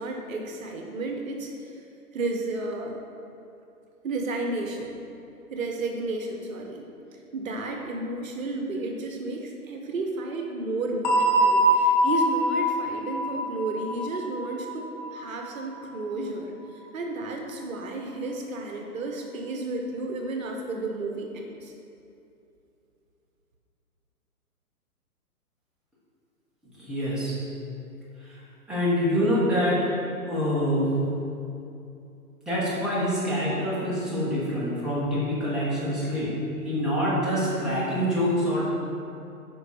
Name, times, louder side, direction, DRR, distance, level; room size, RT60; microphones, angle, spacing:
voice 1, 0.0-1.8 2.1-3.0 4.0-5.0 5.5-6.8 7.3-21.7, right 2 dB, 60° right, 2 dB, 1.1 m, -32 dB
sound 1, 11.0-15.7, right 1 dB, 30° left, 0.9 m, -24 dB
voice 2, 26.8-27.4 28.2-28.4 28.7-29.9 30.3-30.9 32.4-36.3 36.6-38.7, equal, ahead, -10 dB, 1.5 m, -26 dB
9.3 x 5.5 x 4.4 m, 2.7 s
hypercardioid pair, 140°, 45 cm